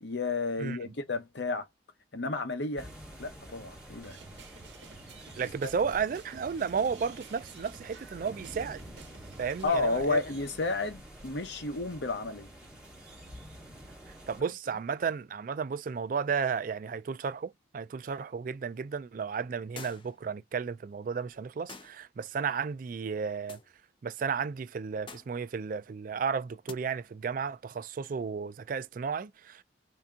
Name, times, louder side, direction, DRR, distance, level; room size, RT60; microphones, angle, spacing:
voice 1, 0.0-1.7 2.1-2.9 3.2-4.2 5.6-5.7 9.6-12.5, left 3 dB, 70° left, 0.9 m, -32 dB
voice 2, 0.6-0.9 5.4-8.8 9.4-10.2 14.3-23.6 24.0-29.6, right 6 dB, 45° right, 0.3 m, -33 dB
sound 1, 2.8-14.4, equal, 5° right, 1.8 m, -49 dB
sound 2, 4.0-9.7, right 4 dB, 75° right, 1.0 m, -52 dB
sound 3, 19.8-20.2 21.7-22.0 23.5-23.7 25.1-25.4 26.7-26.8, left 4 dB, 25° left, 0.6 m, -46 dB
3.4 x 2.8 x 3.7 m
head